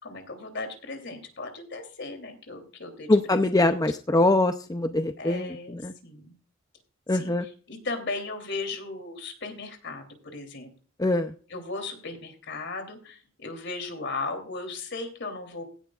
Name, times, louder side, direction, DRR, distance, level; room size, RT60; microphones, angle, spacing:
voice 1, 0.0-3.8 4.1-4.3 5.2-6.3 7.1-10.7 11.5-15.6, left 3 dB, 55° left, 6 dB, 3.1 m, -37 dB
voice 2, 3.1-5.9 7.1-7.5 11.0-11.3, left 2 dB, 15° left, 8 dB, 0.5 m, -23 dB
16.5 x 10.5 x 2.4 m, 0.40 s
head